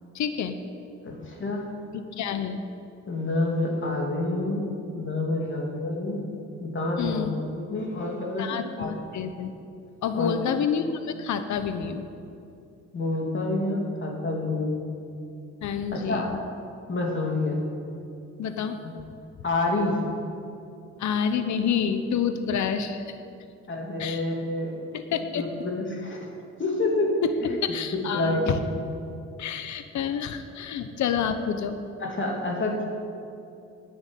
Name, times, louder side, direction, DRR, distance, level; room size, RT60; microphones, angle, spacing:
voice 1, 0.1-0.6 1.9-2.6 7.0-7.3 8.4-9.5 10.0-12.1 15.6-16.4 18.4-18.8 21.0-23.2 24.0-24.2 24.9-25.4 27.2-27.3 27.6-28.6 29.4-31.8, left 7 dB, 70° left, 9 dB, 1.0 m, -28 dB
voice 2, 1.0-1.6 3.1-4.6 4.9-6.2 6.6-7.3 7.6-8.9 10.1-10.3 12.9-14.8 15.9-16.3 16.9-17.6 19.4-20.0 23.7-24.7 25.3-27.1 27.4-27.6 28.1-28.8 32.0-32.9, left 2 dB, 40° left, 0 dB, 3.1 m, -28 dB
10.5 x 9.9 x 9.3 m, 2.6 s
cardioid pair, 90°, 30 cm